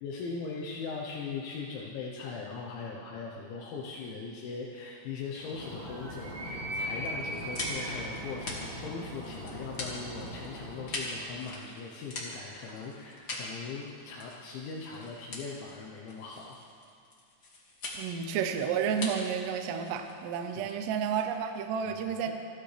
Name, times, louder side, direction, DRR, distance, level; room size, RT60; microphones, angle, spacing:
voice 1, 0.0-16.6 20.6-20.7 21.8-22.0, left 4 dB, 75° left, -2 dB, 3.1 m, -40 dB
Animal, 5.4-11.2, equal, 35° right, 3.2 m, -39 dB
sound 1, 7.0-21.7, left 2 dB, 50° left, 1.4 m, -43 dB
voice 2, 17.9-22.3, right 7 dB, 75° right, 6 dB, 2.6 m, -31 dB
28.5 x 12.0 x 3.4 m, 2.4 s
omnidirectional pair, 5.7 m